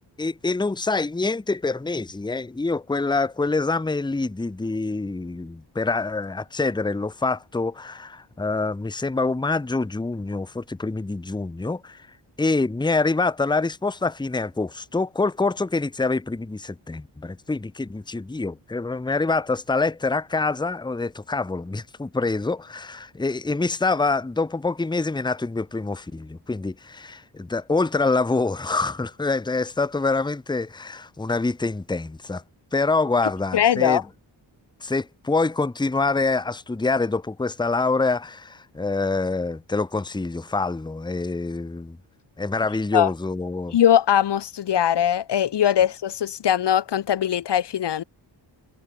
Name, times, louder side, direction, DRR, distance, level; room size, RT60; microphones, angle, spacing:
voice 1, 0.2-12.1 12.4-32.4 32.7-34.0 34.8-42.0 42.4-43.8, left 3 dB, 10° left, 0.7 m, -26 dB
voice 2, 33.5-34.0 42.9-43.1 43.7-48.0, left 10 dB, 65° left, 0.7 m, -21 dB
wide cardioid pair, 85°, 45 cm